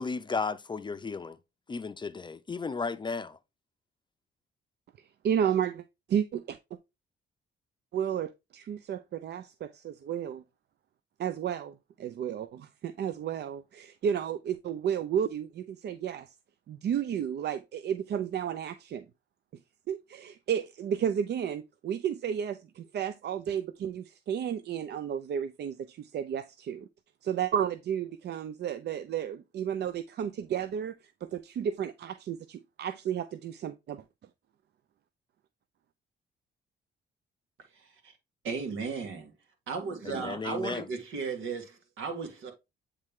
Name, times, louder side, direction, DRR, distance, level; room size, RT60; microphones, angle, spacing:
voice 1, 0.0-1.4 1.7-3.4 40.0-40.9, left 4 dB, 25° left, 0.5 m, -34 dB
voice 2, 5.2-6.6 7.9-10.4 11.2-16.3 16.7-19.1 19.9-26.9 27.2-34.0, right 8 dB, 55° right, 0.5 m, -32 dB
voice 3, 37.7-38.1 38.4-39.3 39.7-42.5, right 5 dB, 85° right, 1.8 m, -35 dB
8.6 x 3.3 x 3.6 m
cardioid pair, 90°, 20 cm